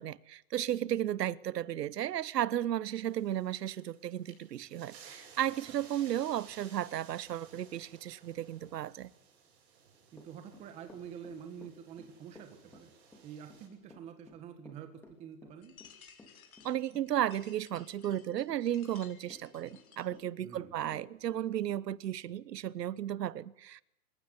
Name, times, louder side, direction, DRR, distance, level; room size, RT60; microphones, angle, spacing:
voice 1, 0.0-9.1 16.6-23.8, right 11 dB, 75° right, 1.1 m, -34 dB
sound 1, 2.9-13.7, right 6 dB, 40° right, 7.8 m, -57 dB
Run / Walk footsteps, 10.1-21.9, left 2 dB, 5° left, 3.0 m, -56 dB
voice 2, 10.1-12.9 13.2-14.9 15.2-15.7 20.4-20.8, right 8 dB, 15° right, 1.5 m, -47 dB
sound 2, 15.6-20.2, left 7 dB, 60° left, 6.2 m, -58 dB
27.5 x 16.0 x 9.5 m
hypercardioid pair, 170°, 49 cm